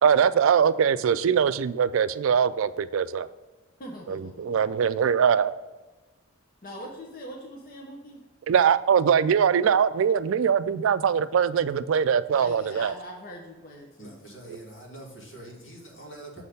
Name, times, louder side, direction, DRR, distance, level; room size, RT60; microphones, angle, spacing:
voice 1, 0.0-3.3 4.1-5.5 8.5-12.9, right 7 dB, 75° right, 0.3 m, -22 dB
voice 2, 3.8-4.9 6.6-8.2 12.3-14.1, equal, 45° left, 1.0 m, -42 dB
voice 3, 14.0-16.4, right 1 dB, 60° left, 2.4 m, -44 dB
7.2 x 4.3 x 5.3 m
head